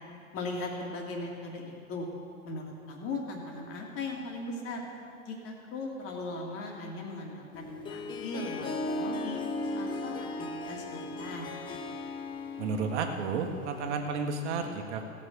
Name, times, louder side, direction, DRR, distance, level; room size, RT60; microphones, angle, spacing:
voice 1, 0.3-2.1 2.4-4.9 5.2-9.4 9.7-10.2 10.5-11.6, left 2 dB, 30° left, 0 dB, 2.3 m, -38 dB
Harp, 7.5-14.0, left 2 dB, 10° left, 0.5 m, -37 dB
voice 2, 12.6-15.0, right 5 dB, 55° right, 4 dB, 1.5 m, -32 dB
16.5 x 6.6 x 6.6 m, 2.7 s
figure-of-eight pair, 100°, 42 cm